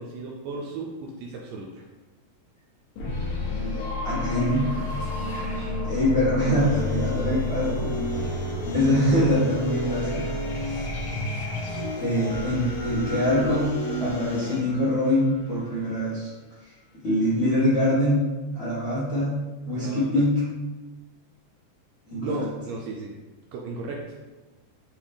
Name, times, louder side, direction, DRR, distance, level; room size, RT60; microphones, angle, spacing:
voice 1, 0.0-1.8 5.3-5.7 12.2-12.6 19.8-20.2 22.2-23.1 23.5-24.2, right 3 dB, 80° right, -1 dB, 1.6 m, -35 dB
sound 1, 3.0-15.7, left 2 dB, 85° left, 1.2 m, -31 dB
voice 2, 4.0-4.7 5.8-8.4 8.7-10.3 11.7-16.3 17.0-20.4 22.1-22.5, left 1 dB, 50° left, -10 dB, 0.8 m, -24 dB
sound 2, 6.6-14.6, left 1 dB, 70° left, 1.7 m, -34 dB
5.4 x 2.8 x 3.4 m, 1.2 s
omnidirectional pair, 3.4 m